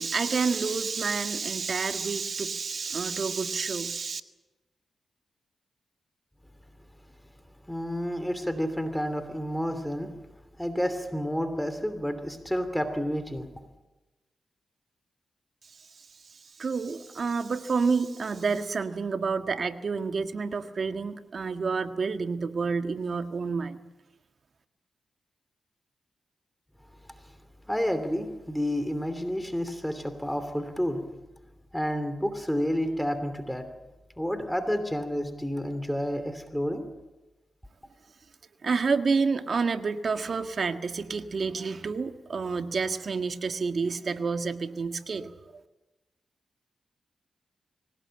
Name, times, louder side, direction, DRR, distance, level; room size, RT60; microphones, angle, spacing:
voice 1, 0.0-4.2 15.7-23.8 38.6-45.3, right 4 dB, 60° right, 8 dB, 1.7 m, -29 dB
voice 2, 7.6-10.1 10.6-13.5 27.1-27.4 27.7-31.0 31.7-33.7 34.2-36.9, equal, 5° left, 9 dB, 2.9 m, -30 dB
24.5 x 18.0 x 8.9 m, 1.1 s
cardioid pair, 55°, 0 cm